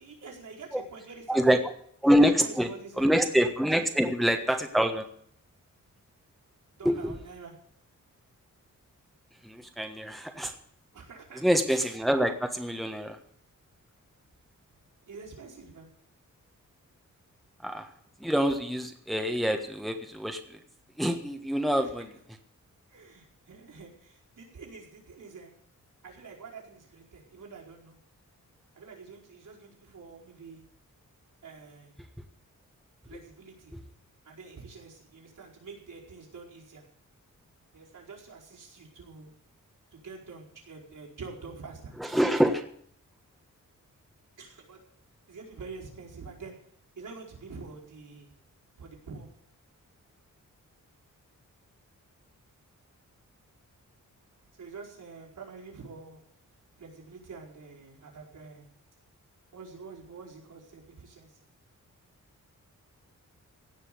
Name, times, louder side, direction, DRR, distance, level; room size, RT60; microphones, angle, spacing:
voice 1, 0.0-1.6 2.1-3.1 3.7-4.0 6.7-7.5 10.9-11.4 15.1-15.9 21.8-21.9 22.9-25.5 26.0-28.0 28.7-30.7 31.4-32.0 33.0-33.7 34.2-36.8 37.7-39.3 39.9-41.9 44.4-44.8 45.3-46.6 47.0-48.3 48.8-49.3 54.5-56.2 56.8-58.7 59.5-61.4, right 4 dB, 75° right, -3 dB, 4.7 m, -46 dB
voice 2, 1.3-1.6 2.0-2.7 3.0-5.1 6.8-7.1 9.4-10.5 11.4-13.2 17.6-17.9 18.2-20.4 21.0-22.1 42.0-42.7, equal, ahead, 5 dB, 1.3 m, -25 dB
16.5 x 6.2 x 9.2 m, 0.63 s
wide cardioid pair, 125°, 32 cm